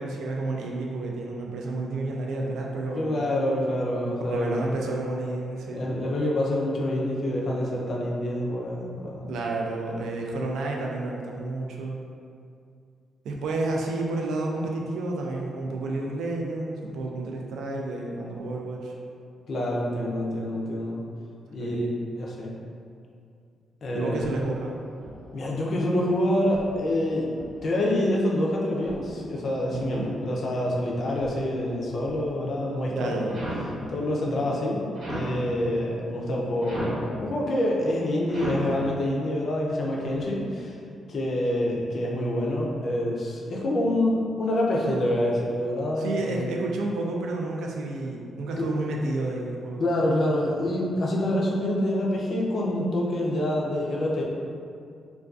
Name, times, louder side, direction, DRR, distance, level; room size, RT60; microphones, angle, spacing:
voice 1, 0.0-3.1 4.3-5.8 9.3-12.0 13.2-18.9 21.6-21.9 23.9-24.8 29.7-30.1 32.9-33.4 46.0-49.8, right 2 dB, 90° right, -1 dB, 0.3 m, -30 dB
voice 2, 2.9-4.6 5.7-9.3 19.5-21.0 21.5-21.9 22.2-22.6 23.8-24.3 25.3-27.3 27.6-33.2 33.9-40.8 41.1-46.5 49.8-54.2, left 1 dB, 40° left, -3 dB, 0.3 m, -26 dB
sound 1, 24.1-25.5 26.3-27.8 28.6-30.2 30.9-32.5 33.3-33.8 34.9-35.5 36.6-37.1 38.3-38.8 40.0-40.3, right 1 dB, 55° right, 0.8 m, -39 dB
2.4 x 2.2 x 2.3 m, 2.4 s
cardioid pair, 165°, 0 cm